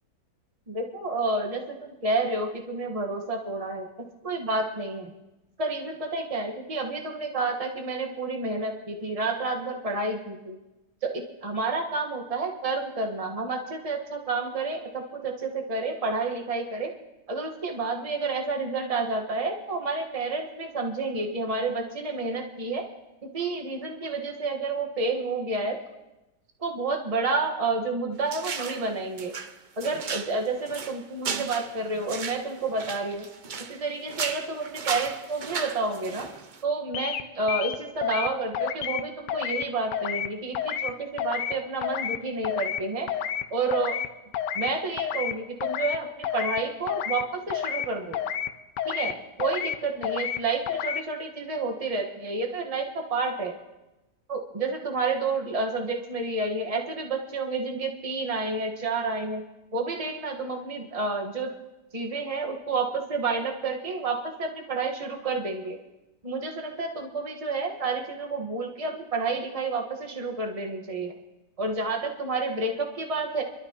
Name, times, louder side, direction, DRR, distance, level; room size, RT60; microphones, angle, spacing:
voice 1, 0.7-5.1 5.6-10.6 11.0-16.9 17.3-22.9 23.2-25.8 26.6-29.3 29.8-33.3 33.7-36.3 36.6-43.1 43.5-44.0 44.5-48.2 48.8-53.5 54.3-59.4 59.7-61.5 61.9-65.8 66.2-71.1 71.6-73.4, right 3 dB, 25° right, 1 dB, 1.3 m, -30 dB
sound 1, 28.3-28.9 29.2-33.8 34.1-36.6, right 5 dB, 70° right, 0.4 m, -35 dB
sound 2, 36.9-37.2 37.5-38.3 38.5-39.0 39.3-39.6 39.9-40.3 40.5-40.9 41.2-41.5 41.8-42.2 42.4-42.8 43.1-43.4 43.7-44.1 44.3-44.7 45.0-45.3 45.6-46.0 46.2-46.6 46.9-47.2 47.5-47.9 48.1-48.5 48.8-49.1 49.4-49.8 50.0-50.4 50.7-51.0, left 9 dB, 85° left, 1.3 m, -29 dB
27.5 x 12.0 x 2.9 m, 0.99 s
omnidirectional pair, 1.8 m